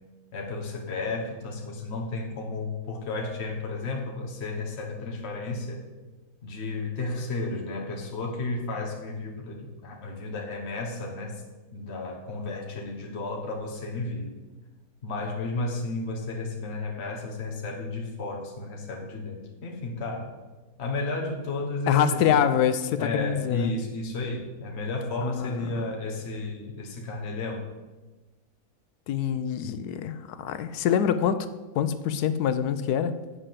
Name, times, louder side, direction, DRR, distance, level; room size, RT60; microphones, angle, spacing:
voice 1, 0.3-5.8 6.4-11.4 11.7-14.3 15.0-20.3 20.8-22.4 23.0-27.6, left 2 dB, 45° left, 0 dB, 1.6 m, -33 dB
voice 2, 21.9-23.7 25.2-25.8 29.1-31.5 31.7-33.2, left 9 dB, 85° left, 11 dB, 1.2 m, -25 dB
8.7 x 4.9 x 7.4 m, 1.2 s
omnidirectional pair, 1.6 m